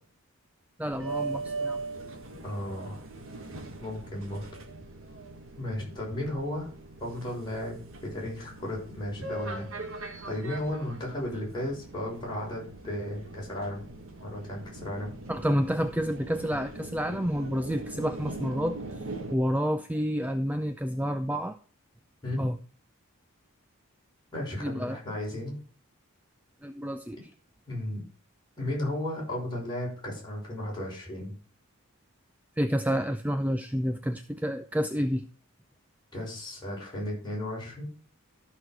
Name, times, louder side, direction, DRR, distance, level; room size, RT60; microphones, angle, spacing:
voice 1, 0.8-1.8 15.3-18.8 19.3-21.6 22.4-22.6 24.6-25.0 26.6-27.2 32.6-35.3, equal, 5° right, 9 dB, 0.4 m, -29 dB
sound 1, 0.9-19.3, right 2 dB, 65° right, 1.8 m, -40 dB
voice 2, 2.4-3.0 3.8-4.4 5.6-6.7 7.0-9.7 10.0-13.8 14.2-15.1 22.2-22.5 24.3-25.6 27.7-28.0 28.6-31.3 36.1-37.8, left 1 dB, 20° left, -4 dB, 6.0 m, -34 dB
13.5 x 6.3 x 4.7 m, 0.41 s
head